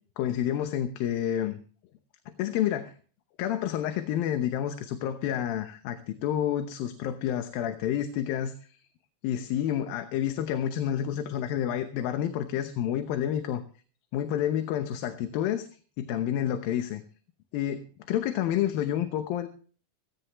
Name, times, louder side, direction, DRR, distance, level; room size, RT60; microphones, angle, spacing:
voice 1, 0.2-1.6 2.3-2.9 3.4-8.8 9.2-13.6 14.1-15.7 16.0-17.0 17.5-19.5, left 10 dB, 80° left, 8 dB, 2.7 m, -29 dB
17.0 x 16.0 x 3.0 m, 0.41 s
omnidirectional pair, 4.2 m